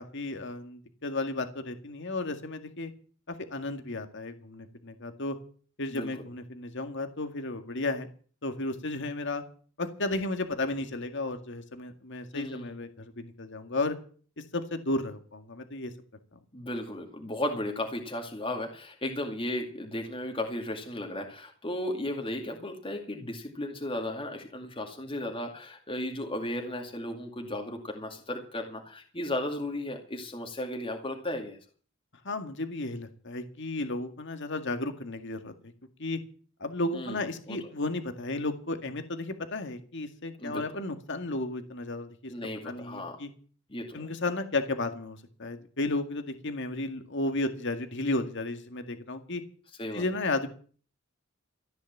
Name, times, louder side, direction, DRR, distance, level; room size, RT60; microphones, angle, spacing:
voice 1, 0.0-2.9 3.3-5.4 5.8-8.1 8.4-9.4 9.8-14.0 14.5-15.9 32.2-35.5 36.0-36.2 36.6-42.3 42.6-43.3 43.9-49.4 49.9-50.5, left 2 dB, 60° left, 7 dB, 2.0 m, -33 dB
voice 2, 12.3-12.7 16.5-31.6 36.9-37.2 37.5-37.6 40.4-40.6 42.3-43.2 43.7-44.1 49.8-50.0, left 1 dB, 25° left, 2 dB, 2.3 m, -35 dB
15.0 x 10.0 x 7.4 m, 0.43 s
head